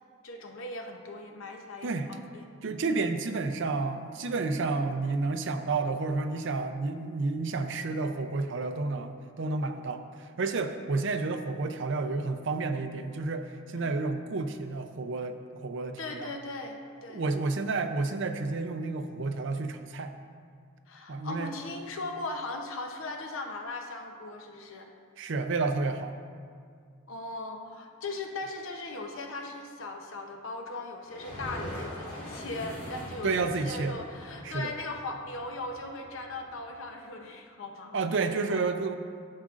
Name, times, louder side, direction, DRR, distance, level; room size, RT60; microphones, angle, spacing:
voice 1, 0.2-2.5 13.8-14.0 16.0-17.2 20.9-24.9 27.1-38.0 38.5-38.6, left 2 dB, 70° left, 3 dB, 0.8 m, -39 dB
voice 2, 2.6-16.3 17.1-20.1 21.1-21.5 25.2-26.2 33.2-34.0 34.4-34.7 37.9-39.0, right 3 dB, 60° right, 7 dB, 0.5 m, -30 dB
sound 1, 31.0-36.7, equal, 35° left, 2.2 m, -42 dB
11.5 x 7.3 x 2.5 m, 2.1 s
head